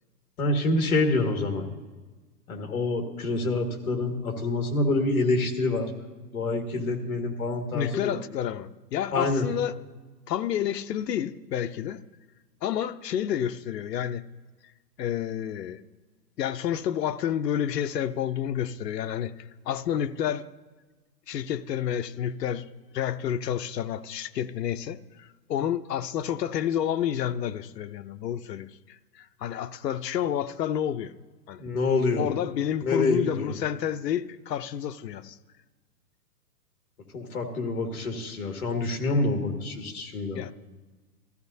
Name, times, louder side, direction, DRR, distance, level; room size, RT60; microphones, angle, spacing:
voice 1, 0.4-1.7 2.5-5.9 6.3-8.2 9.1-9.5 31.6-32.3 32.8-33.5 37.1-40.4, left 2 dB, 55° left, 1.9 m, -26 dB
voice 2, 7.7-9.7 10.3-12.0 12.6-14.2 15.0-15.8 16.4-19.3 19.7-20.4 21.3-22.7 22.9-28.7 29.2-31.1 31.5-31.6 32.2-35.4 40.3-40.5, left 10 dB, 75° left, 0.7 m, -29 dB
18.5 x 14.0 x 2.7 m
hypercardioid pair, 170°, 49 cm